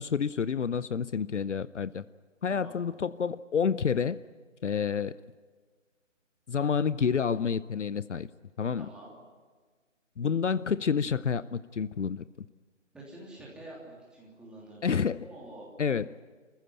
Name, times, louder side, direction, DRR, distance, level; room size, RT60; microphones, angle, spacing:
voice 1, 0.0-2.0 2.4-4.2 4.6-5.1 6.5-8.3 8.6-8.9 10.2-12.2 14.8-15.3 15.8-16.1, left 6 dB, 70° left, 17 dB, 0.8 m, -29 dB
voice 2, 8.8-9.2 12.9-15.7, right 1 dB, ahead, -5 dB, 3.2 m, -47 dB
28.0 x 15.0 x 9.9 m, 1.4 s
figure-of-eight pair, 155°, 37 cm